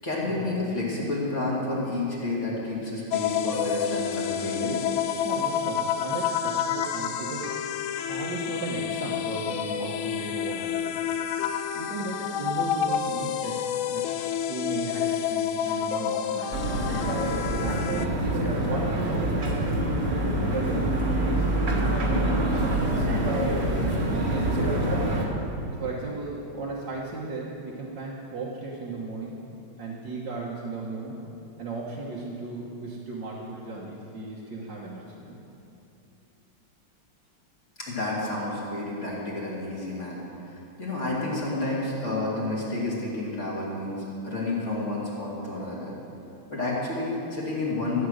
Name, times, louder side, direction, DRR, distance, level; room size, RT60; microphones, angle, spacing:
voice 1, 0.0-4.8 37.8-45.9 46.5-48.1, left 2 dB, 35° left, -6 dB, 2.8 m, -30 dB
sound 1, 3.1-18.1, left 9 dB, 75° left, 1.4 m, -29 dB
voice 2, 5.2-11.0 11.7-13.6 13.9-14.1 14.5-16.7 17.5-23.7 24.1-25.1 25.8-29.4 29.8-31.2 31.6-35.3, right 3 dB, 60° right, -5 dB, 1.9 m, -35 dB
sound 2, 16.5-25.2, right 1 dB, 35° right, 1.6 m, -26 dB
14.0 x 8.4 x 6.4 m, 2.8 s
omnidirectional pair, 2.3 m